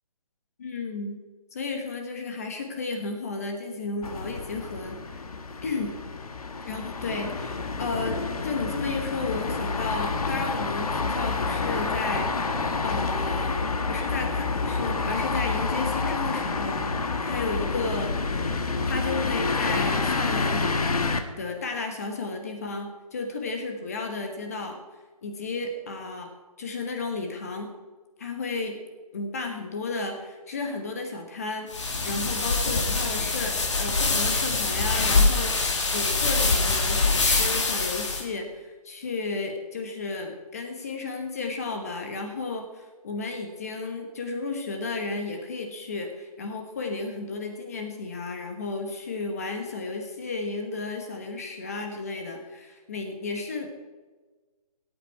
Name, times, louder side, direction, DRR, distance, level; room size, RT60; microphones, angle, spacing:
voice 1, 0.6-1.2 1.5-5.2 5.6-6.0 6.6-18.2 18.9-24.8 25.2-26.3 26.6-27.8 28.2-28.8 29.1-53.7, left 3 dB, 25° left, 4 dB, 1.2 m, -33 dB
sound 1, 4.0-21.2, left 4 dB, 70° left, 1.5 m, -28 dB
sound 2, 31.7-38.2, left 3 dB, 50° left, 2.1 m, -24 dB
18.0 x 8.7 x 4.7 m, 1.3 s
hypercardioid pair, 175°, 20 cm